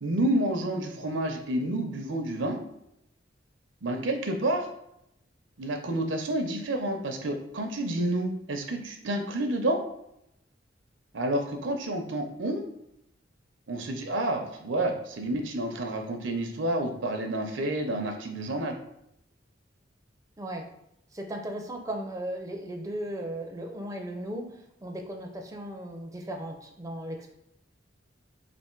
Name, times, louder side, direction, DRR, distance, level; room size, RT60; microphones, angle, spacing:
voice 1, 0.0-2.6 3.8-4.7 5.6-9.8 11.1-12.6 13.7-18.8, right 1 dB, 75° right, 5 dB, 0.6 m, -29 dB
voice 2, 21.1-24.5 24.8-27.3, right 1 dB, 15° right, 2 dB, 0.4 m, -36 dB
3.4 x 2.5 x 4.4 m, 0.79 s
head